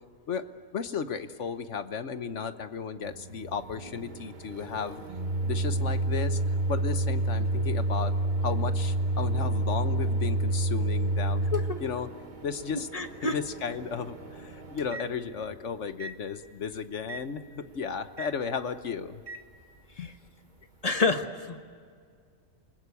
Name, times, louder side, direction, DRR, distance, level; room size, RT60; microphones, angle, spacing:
voice 1, 0.7-5.0 5.4-6.4 6.7-8.1 8.4-11.5 11.8-12.1 12.4-12.9 13.2-19.2 20.0-20.1, left 6 dB, 60° left, 11 dB, 1.3 m, -34 dB
Microwave oven, 3.0-15.6 16.0-16.2 17.1-17.3 18.2-18.3 19.3-19.4, right 2 dB, 35° right, 1.4 m, -30 dB
voice 2, 12.9-13.3 20.8-21.6, left 4 dB, 30° left, 8 dB, 1.3 m, -27 dB
28.5 x 20.5 x 8.3 m, 2.1 s
omnidirectional pair, 1.4 m